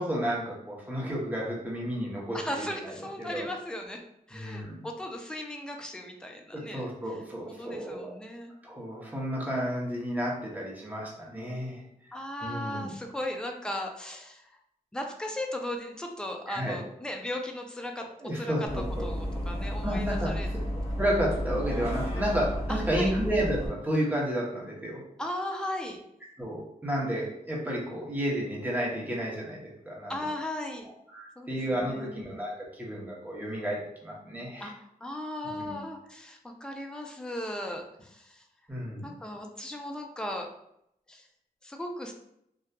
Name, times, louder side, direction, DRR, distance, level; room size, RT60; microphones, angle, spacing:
voice 1, 0.0-2.4 2.8-3.5 4.3-4.9 6.5-8.1 8.6-11.8 12.4-12.9 16.5-16.8 18.0-19.0 19.8-20.3 21.0-25.0 26.4-30.2 31.1-34.7 35.4-35.7 38.7-39.1, equal, 10° right, -4 dB, 0.8 m, -32 dB
voice 2, 2.3-4.0 4.3-8.5 12.1-14.5 14.9-18.1 18.3-20.5 22.7-23.1 25.2-26.0 30.1-30.9 31.4-32.2 34.6-38.4 39.0-40.5 41.1-41.3 41.6-42.1, left 1 dB, 5° left, 3 dB, 0.3 m, -37 dB
Bus, 18.7-23.7, equal, 40° left, 1.1 m, -32 dB
2.6 x 2.2 x 2.2 m, 0.75 s
wide cardioid pair, 90°, 16 cm